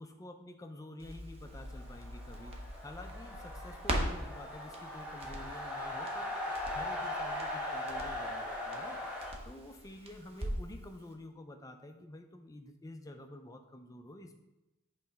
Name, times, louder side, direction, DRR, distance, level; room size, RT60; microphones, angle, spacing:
voice 1, 0.0-14.4, left 1 dB, 15° left, 6 dB, 0.4 m, -49 dB
Crackle, 1.0-10.8 11.1-11.2, right 1 dB, 25° right, 0.7 m, -42 dB
sound 1, 1.6-9.3, left 1 dB, 5° right, 1.3 m, -39 dB
7.8 x 3.2 x 3.9 m, 1.0 s
head